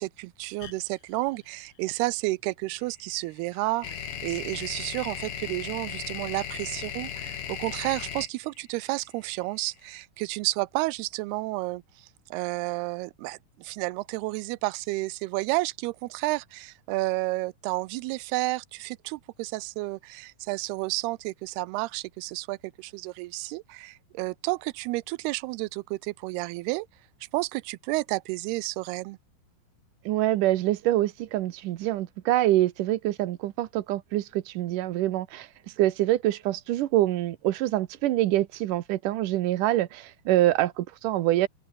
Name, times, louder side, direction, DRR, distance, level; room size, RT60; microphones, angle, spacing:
voice 1, 0.0-11.8 12.3-26.9 27.3-29.2, right 21 dB, 85° right, 2.6 m, -31 dB
sound 1, 0.6-0.7 2.8-9.8, left 9 dB, 55° left, 3.6 m, -36 dB
voice 2, 30.1-35.5 35.8-41.5, right 15 dB, 70° right, 2.2 m, -25 dB
open air
omnidirectional pair, 4.5 m